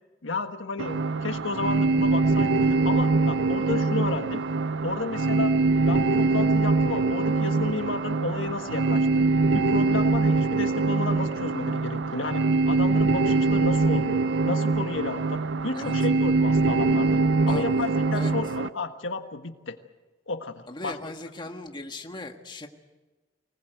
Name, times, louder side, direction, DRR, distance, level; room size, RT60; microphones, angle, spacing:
voice 1, 0.2-4.4 4.8-5.6 5.9-9.3 9.5-17.2 17.5-19.8 20.3-21.1, left 3 dB, 80° left, 7 dB, 1.5 m, -32 dB
sound 1, 0.8-18.7, right 3 dB, 65° right, 0.7 m, -23 dB
voice 2, 17.5-17.9 18.1-18.3 20.7-22.7, left 2 dB, 25° left, 4 dB, 1.7 m, -38 dB
24.5 x 19.5 x 8.0 m, 1.2 s
head